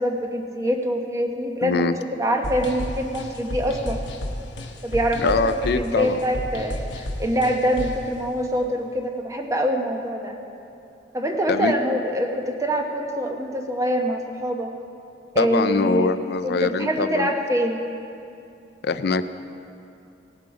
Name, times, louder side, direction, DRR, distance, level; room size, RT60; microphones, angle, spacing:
voice 1, 0.0-1.9 2.2-4.0 4.8-10.4 11.1-14.7 15.3-16.1 16.4-17.9, equal, 20° right, 2 dB, 1.0 m, -24 dB
voice 2, 1.6-2.0 5.2-6.2 11.5-11.7 15.4-17.3 18.8-19.2, left 4 dB, 65° left, 12 dB, 0.4 m, -23 dB
sound 1, 2.4-8.1, left 1 dB, 85° left, 1.1 m, -32 dB
18.0 x 7.6 x 4.9 m, 2.7 s
head